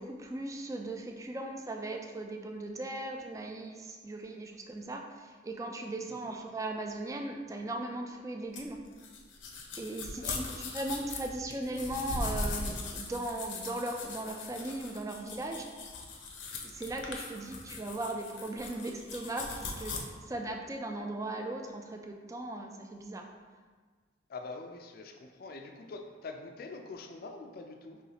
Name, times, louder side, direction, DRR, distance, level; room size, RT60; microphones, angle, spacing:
voice 1, 0.0-8.8 9.8-15.7 16.5-23.2, right 2 dB, 15° right, 3 dB, 0.3 m, -38 dB
sound 1, 8.5-20.0, left 3 dB, 90° left, 0.7 m, -40 dB
voice 2, 10.1-10.6 24.3-28.0, left 3 dB, 55° left, 4 dB, 0.4 m, -45 dB
5.5 x 3.1 x 2.9 m, 1.5 s
head